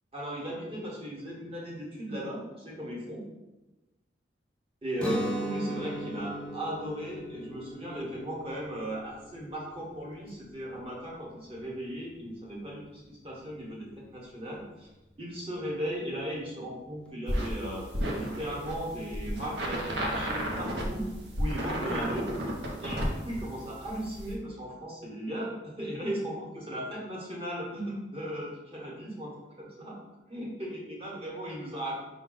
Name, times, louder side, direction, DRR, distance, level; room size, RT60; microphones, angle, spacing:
voice 1, 0.1-3.2 4.8-14.9 15.2-17.9 18.1-21.1 21.4-22.3 22.8-30.0 30.3-32.0, equal, 30° right, -3 dB, 1.0 m, -37 dB
Guitar, 5.0-10.8, right 1 dB, 5° left, 0.4 m, -38 dB
sound 1, 17.3-24.3, equal, 65° right, 0.7 m, -33 dB
5.0 x 2.2 x 3.8 m, 1.1 s
head